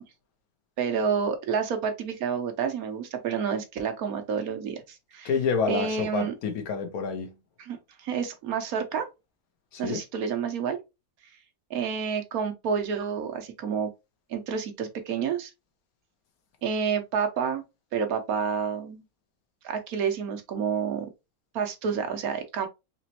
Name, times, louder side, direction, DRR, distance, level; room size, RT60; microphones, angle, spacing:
voice 1, 0.8-5.3 5.7-6.3 7.6-9.1 9.8-10.8 11.7-13.9 14.3-15.5 16.6-17.6 17.9-19.0 19.6-21.1 21.5-22.7, right 6 dB, 80° right, 1.3 m, -29 dB
voice 2, 5.2-7.3 9.7-10.0, left 5 dB, 90° left, 1.3 m, -28 dB
4.1 x 3.0 x 2.8 m
omnidirectional pair, 1.5 m